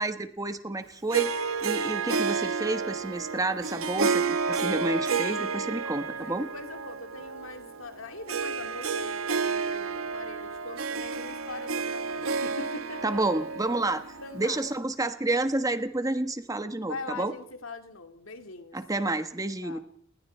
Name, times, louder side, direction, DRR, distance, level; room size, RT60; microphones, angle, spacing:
voice 1, 0.0-1.3 1.6-6.5 13.0-14.0 14.3-17.3 18.7-19.8, right 2 dB, 15° right, 9 dB, 1.2 m, -30 dB
Harp, 1.1-14.7, right 5 dB, 85° right, 1.2 m, -31 dB
voice 2, 6.2-13.2 14.2-14.6 16.8-18.8 19.5-19.8, left 3 dB, 75° left, 7 dB, 2.3 m, -42 dB
29.5 x 20.5 x 4.4 m, 0.64 s
head